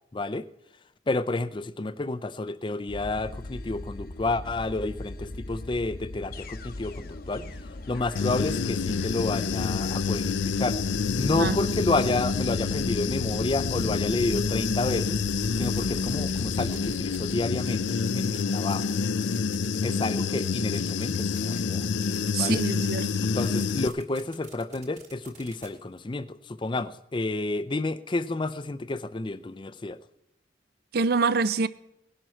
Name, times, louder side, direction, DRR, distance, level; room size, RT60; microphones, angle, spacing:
voice 1, 0.1-0.5 1.1-7.5 7.9-10.8 11.2-15.2 15.6-19.0 19.8-21.9 22.4-22.6 23.3-30.0, left 2 dB, 25° left, 0.5 m, -30 dB
sound 1, 2.9-18.2, left 2 dB, 55° left, 0.8 m, -40 dB
Human voice / Buzz, 8.1-23.9, left 5 dB, 85° left, 0.5 m, -28 dB
sound 2, 15.4-17.3 17.6-18.5 18.8-19.0 19.2-19.8 20.0-20.1 20.4-21.6 22.0-22.6 22.9-25.7, right 6 dB, 40° right, 2.1 m, -48 dB
voice 2, 22.3-23.1 30.9-31.7, right 4 dB, 55° right, 0.5 m, -25 dB
18.5 x 11.0 x 4.4 m
head